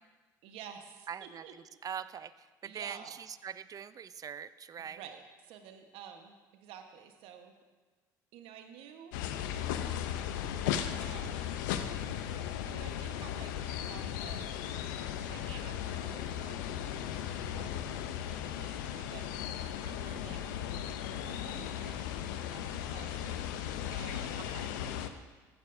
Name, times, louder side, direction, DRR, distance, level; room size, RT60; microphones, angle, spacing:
voice 1, 0.4-1.5 2.6-3.2 4.8-7.5 8.3-9.2 11.0-11.6 12.7-14.6 15.2-19.6 20.2-20.4 21.2-22.1 22.3-24.4, right 8 dB, 65° right, 6 dB, 1.2 m, -51 dB
voice 2, 1.1-1.4 1.8-5.0 19.8-20.3 24.4-24.8, right 8 dB, 35° right, 15 dB, 0.5 m, -43 dB
sound 1, 9.1-25.1, left 10 dB, 80° left, 0.6 m, -36 dB
15.0 x 9.8 x 2.7 m, 1.3 s
hypercardioid pair, 65°, 10 cm